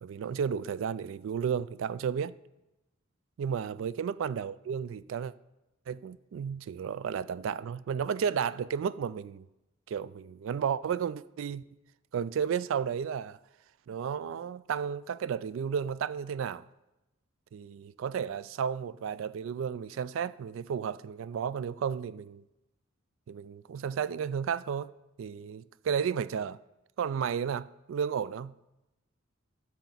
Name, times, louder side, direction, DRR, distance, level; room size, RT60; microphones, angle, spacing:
voice 1, 0.0-2.4 3.4-5.3 5.9-9.5 9.9-11.6 12.1-13.4 13.9-16.7 17.5-22.4 23.3-24.9 25.2-26.6 27.0-28.5, right 7 dB, 70° right, 0.3 m, -33 dB
13.0 x 7.1 x 4.0 m
head